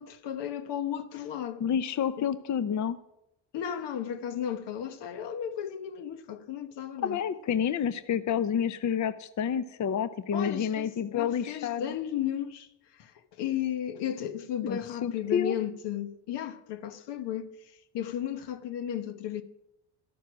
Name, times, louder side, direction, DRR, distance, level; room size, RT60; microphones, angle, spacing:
voice 1, 0.0-1.6 2.2-2.3 3.5-7.2 10.3-19.4, left 10 dB, 75° left, 1.2 m, -34 dB
voice 2, 1.6-3.0 7.0-12.0 14.6-15.6, left 8 dB, 45° left, 0.7 m, -29 dB
12.5 x 9.3 x 6.1 m
supercardioid pair, 70°, 42 cm